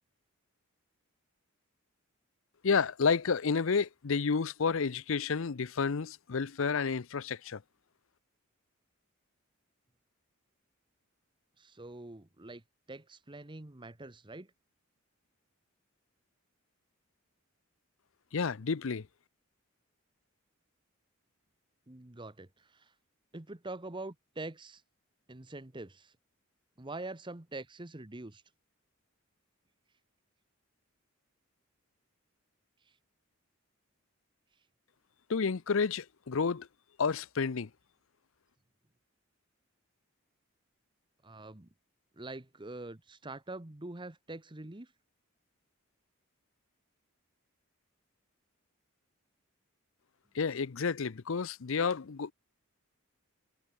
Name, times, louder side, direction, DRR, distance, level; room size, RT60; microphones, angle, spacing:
voice 1, 2.6-7.6 18.3-19.1 35.3-36.7 37.0-37.7 50.3-52.3, left 5 dB, 65° left, 0.6 m, -30 dB
voice 2, 11.6-12.6 12.9-14.5 21.9-22.9 23.3-24.8 25.3-26.1 26.8-28.4 41.2-41.7 42.2-44.9, right 2 dB, 20° right, 1.1 m, -44 dB
head